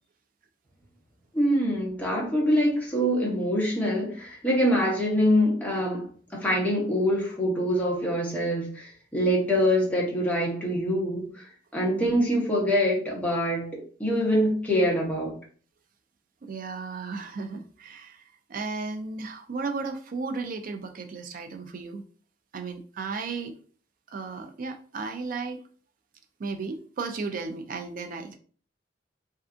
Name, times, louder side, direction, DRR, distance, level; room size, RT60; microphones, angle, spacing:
voice 1, 1.3-6.1 6.3-11.5 11.7-15.3, equal, 10° left, -3 dB, 0.7 m, -25 dB
voice 2, 16.4-18.2 18.5-22.0 22.5-23.5 24.1-25.6 26.4-28.4, right 4 dB, 45° right, 6 dB, 0.4 m, -34 dB
2.6 x 2.4 x 2.4 m, 0.43 s
head